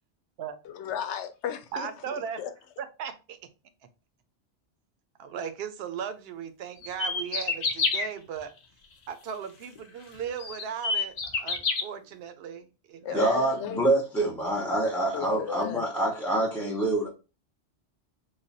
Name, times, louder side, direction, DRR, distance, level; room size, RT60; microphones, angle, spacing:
voice 1, 0.6-2.5 13.0-13.8 15.1-15.8, left 9 dB, 80° left, 0.9 m, -34 dB
voice 2, 1.7-2.4 2.8-3.4 5.2-8.5 9.1-13.3, right 7 dB, 65° right, 0.7 m, -37 dB
sound 1, 6.8-8.1 9.8-9.9 10.4-11.8, left 4 dB, 50° left, 0.5 m, -27 dB
voice 3, 13.1-17.1, right 2 dB, ahead, 0.4 m, -26 dB
3.2 x 2.2 x 3.9 m
omnidirectional pair, 1.2 m